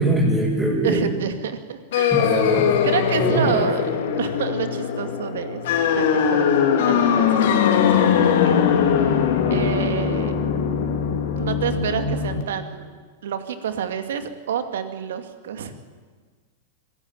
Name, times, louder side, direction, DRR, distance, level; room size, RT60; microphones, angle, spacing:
voice 1, 0.0-1.0 2.1-2.7 3.2-3.6, right 2 dB, 10° right, -6 dB, 7.5 m, -21 dB
voice 2, 0.8-2.3 2.8-3.9 4.2-5.6 5.9-6.5 6.9-8.6 9.5-10.4 11.4-12.9 13.2-15.7, right 8 dB, 70° right, 8 dB, 2.3 m, -28 dB
sound 1, 1.9-12.4, left 8 dB, 60° left, 3.0 m, -21 dB
25.0 x 16.0 x 9.1 m, 1.5 s
figure-of-eight pair, 95°, 0 cm